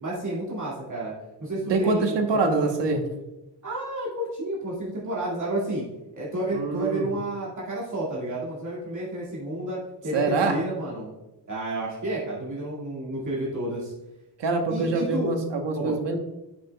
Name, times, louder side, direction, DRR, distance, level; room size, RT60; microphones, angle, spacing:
voice 1, 0.0-1.1 1.4-2.7 3.6-5.8 6.1-9.8 10.0-11.1 11.5-13.9 14.7-15.3 15.7-15.9, right 1 dB, 45° right, -7 dB, 2.2 m, -31 dB
voice 2, 1.7-3.0 6.5-7.1 10.1-10.6 14.4-16.2, right 3 dB, 80° right, 5 dB, 1.1 m, -24 dB
9.9 x 5.6 x 2.3 m, 1.0 s
wide cardioid pair, 95°, 42 cm